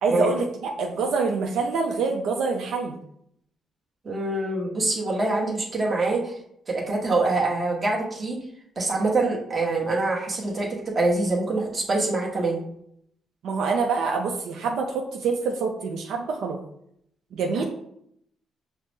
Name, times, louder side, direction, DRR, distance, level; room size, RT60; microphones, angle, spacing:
voice 1, 0.0-3.0 13.4-16.6 17.3-17.6, right 4 dB, 80° right, 1 dB, 0.5 m, -26 dB
voice 2, 4.0-6.3 6.7-8.4 8.8-12.6, right 2 dB, 30° right, -1 dB, 1.1 m, -25 dB
5.6 x 2.0 x 3.3 m, 0.72 s
cardioid pair, 90°, 0 cm